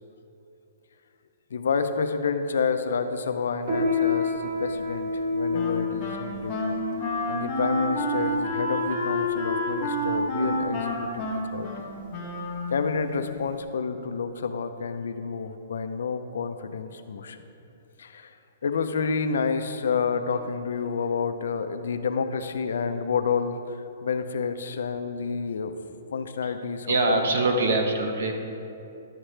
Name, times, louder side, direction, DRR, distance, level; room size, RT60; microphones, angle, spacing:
voice 1, 1.5-6.6 7.3-11.3 11.5-11.9 12.7-17.4 18.0-18.4 18.6-25.7 26.1-27.3 27.7-27.8, left 5 dB, 80° left, 9 dB, 0.6 m, -29 dB
Piano, 3.6-13.6, left 4 dB, 45° right, 1.7 m, -31 dB
Wind instrument woodwind instrument, 5.5-13.0, equal, 20° left, 1.3 m, -29 dB
voice 2, 26.9-28.3, right 2 dB, 70° right, 4 dB, 1.1 m, -23 dB
11.5 x 7.3 x 3.3 m, 2.8 s
hypercardioid pair, 170°, 0 cm